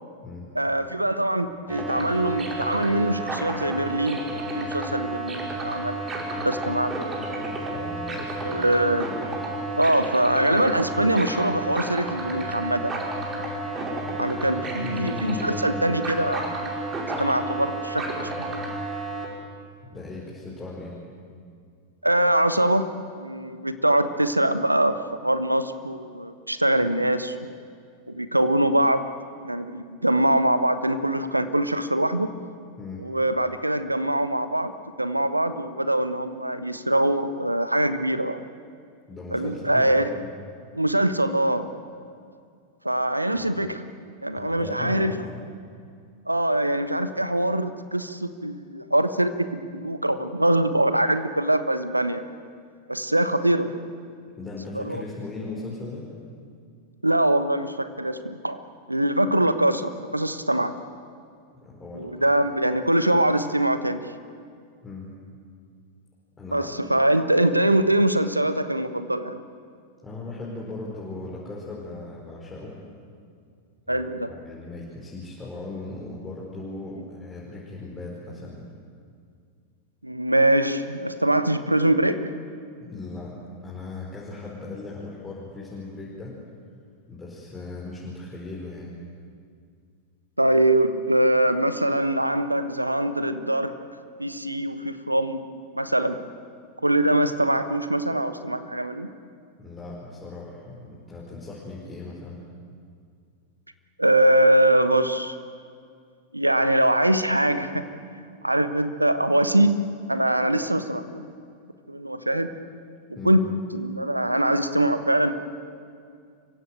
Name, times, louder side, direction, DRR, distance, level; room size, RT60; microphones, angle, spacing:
voice 1, 0.5-4.2 4.5-6.0 6.4-7.1 8.4-9.0 9.7-13.0 14.2-16.5 17.2-18.3 22.0-22.9 23.1-27.5 28.1-29.1 29.4-32.4 33.0-34.7 35.0-38.4 39.3-40.1 40.7-41.7 42.8-43.9 44.2-45.1 46.3-52.2 52.9-53.7 54.7-55.0 57.0-58.6 58.9-60.7 61.9-64.0 66.5-69.4 73.9-74.3 80.0-82.2 90.4-93.8 94.2-95.4 95.7-96.2 96.8-99.1 104.0-105.3 106.3-109.8 110.1-111.2 111.9-112.5 113.2-113.4 113.7-115.3, right 1 dB, 85° right, 11 dB, 1.2 m, -23 dB
sound 1, 1.7-19.3, right 2 dB, 25° right, 5.2 m, -31 dB
voice 2, 7.6-8.7 14.6-15.9 19.9-21.0 32.8-33.0 39.1-40.3 43.4-43.5 44.3-45.4 54.4-56.0 61.6-62.1 64.8-65.1 66.4-66.7 70.0-72.7 73.9-78.7 82.8-83.3 83.6-86.4 87.1-88.9 99.6-102.4 113.1-113.3, left 3 dB, 15° left, -5 dB, 4.7 m, -38 dB
27.5 x 16.0 x 9.2 m, 2.2 s
figure-of-eight pair, 90°, 0 cm